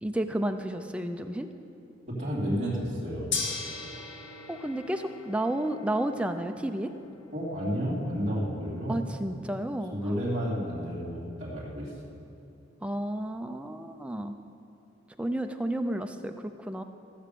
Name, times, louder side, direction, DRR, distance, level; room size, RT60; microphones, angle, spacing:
voice 1, 0.0-1.5 4.5-6.9 8.9-10.1 12.8-14.4 15.2-16.8, right 1 dB, 5° right, 6 dB, 0.5 m, -31 dB
voice 2, 2.1-3.3 7.3-9.0 9.9-11.9, equal, 35° right, -9 dB, 3.0 m, -31 dB
Gong, 3.3-13.5, left 4 dB, 85° left, 1.6 m, -42 dB
15.0 x 7.3 x 6.9 m, 2.7 s
head